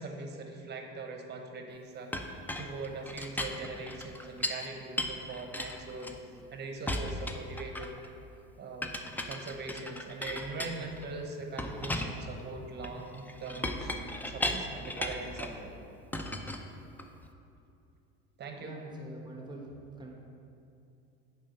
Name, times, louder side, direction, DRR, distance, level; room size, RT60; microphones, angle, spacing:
voice 1, 0.0-6.1 6.5-7.9 8.6-9.0 9.2-13.9 14.3-15.7 18.4-18.8, right 3 dB, 35° right, 4 dB, 1.1 m, -41 dB
Chink clink, 2.1-4.7 5.0-6.5 6.9-8.1 8.8-11.1 11.6-15.6 16.1-17.3, left 1 dB, 5° left, 0.5 m, -37 dB
voice 2, 18.6-19.7 19.9-20.1, right 3 dB, 15° right, 0 dB, 1.1 m, -45 dB
7.5 x 4.9 x 5.5 m, 2.6 s
supercardioid pair, 105°, 29 cm